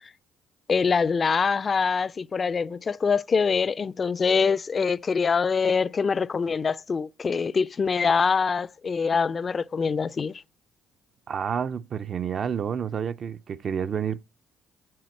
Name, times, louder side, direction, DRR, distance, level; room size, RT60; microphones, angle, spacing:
voice 1, 0.7-10.4, left 5 dB, 40° left, 0.4 m, -24 dB
voice 2, 11.3-14.2, right 7 dB, 55° right, 0.4 m, -29 dB
7.6 x 7.3 x 4.4 m
hypercardioid pair, 55°, 0 cm